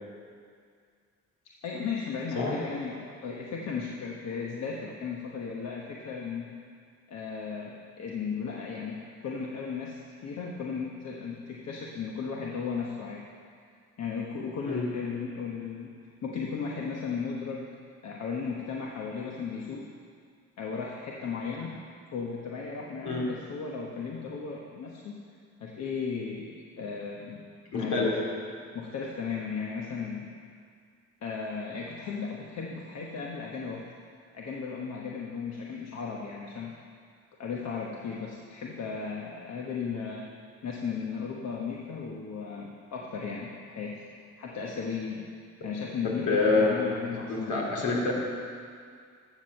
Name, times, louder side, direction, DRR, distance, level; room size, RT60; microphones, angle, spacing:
voice 1, 1.4-6.5 7.1-13.2 14.0-15.9 16.2-17.7 18.0-19.9 20.6-21.8 22.1-25.2 25.6-27.4 27.7-28.2 28.7-30.3 31.2-33.8 34.3-36.7 37.4-40.3 40.6-44.1 44.4-45.2 45.6-47.7, left 5 dB, 60° left, -1 dB, 1.2 m, -35 dB
voice 2, 27.7-28.2 46.0-46.8 47.1-48.1, left 3 dB, 75° left, -3 dB, 3.0 m, -27 dB
12.5 x 7.5 x 6.6 m, 2.2 s
cardioid pair, 90°, 30 cm